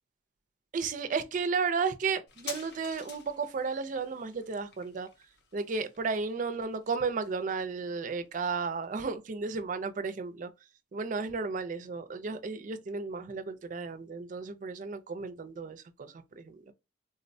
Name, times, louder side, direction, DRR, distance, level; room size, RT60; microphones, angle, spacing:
voice 1, 0.7-5.1 5.5-10.5 10.9-16.6, right 4 dB, 45° right, 0.4 m, -33 dB
sound 1, 2.3-9.4 9.6-9.7, left 5 dB, 60° left, 0.6 m, -50 dB
3.8 x 2.0 x 2.6 m
head